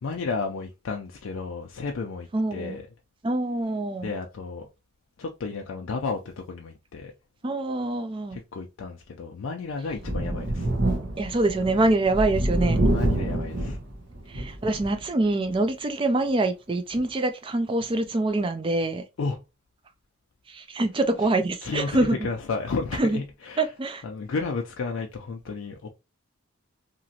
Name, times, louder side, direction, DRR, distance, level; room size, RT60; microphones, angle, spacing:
voice 1, 0.0-2.8 4.0-4.7 5.2-7.1 8.3-10.7 12.6-13.8 19.2-19.4 21.6-23.7 24.0-25.9, left 4 dB, 65° left, 0.4 m, -32 dB
voice 2, 2.3-2.8 3.2-4.1 7.4-8.4 11.2-12.8 14.3-19.0 20.5-22.3 23.0-23.2 23.6-24.0, right 2 dB, 25° right, 0.3 m, -25 dB
Thunder, 9.9-15.0 15.5-15.6 16.9-17.0, right 1 dB, 55° right, 0.8 m, -27 dB
2.9 x 2.5 x 2.7 m
head